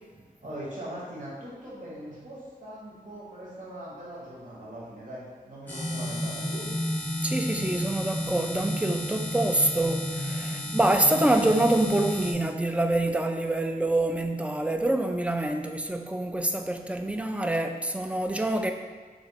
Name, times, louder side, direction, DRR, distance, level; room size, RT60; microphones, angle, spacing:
voice 1, 0.4-6.7, right 1 dB, 55° right, -7 dB, 1.4 m, -41 dB
sound 1, 5.7-12.3, left 1 dB, 10° left, 0.8 m, -32 dB
voice 2, 7.2-18.7, right 1 dB, 10° right, 5 dB, 0.3 m, -26 dB
3.4 x 3.2 x 4.0 m, 1.4 s
wide cardioid pair, 80°, 16 cm